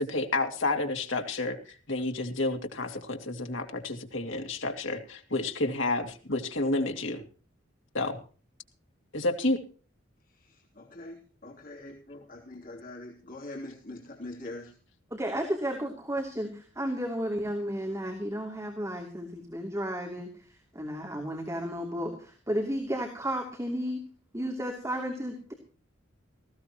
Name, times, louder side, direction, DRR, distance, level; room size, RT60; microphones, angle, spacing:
voice 1, 0.0-7.2 7.9-8.2 9.1-9.6, left 2 dB, 75° left, 4 dB, 2.7 m, -30 dB
voice 2, 10.7-14.7, left 2 dB, 45° left, 0 dB, 3.2 m, -43 dB
voice 3, 15.1-20.3 20.7-24.0 24.3-25.5, equal, 15° right, 1 dB, 2.9 m, -33 dB
19.0 x 16.5 x 3.0 m, 0.39 s
head